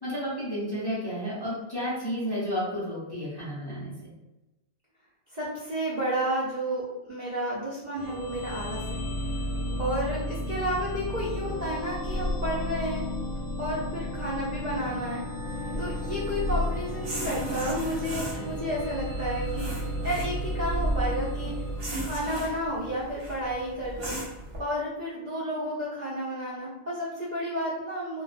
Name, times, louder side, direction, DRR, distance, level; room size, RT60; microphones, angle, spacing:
voice 1, 0.0-4.1 9.4-9.8 18.3-18.7 19.9-20.1, equal, 30° left, -9 dB, 0.4 m, -32 dB
voice 2, 5.3-9.0 9.8-13.0 13.6-15.2 15.8-21.5 22.0-24.1 24.6-28.2, equal, 70° right, -8 dB, 0.4 m, -31 dB
sound 1, 7.9-22.7, left 1 dB, 65° left, 0.8 m, -32 dB
sound 2, 15.4-24.6, right 1 dB, 50° right, 0.8 m, -39 dB
2.3 x 2.2 x 2.5 m, 1.0 s
omnidirectional pair, 1.5 m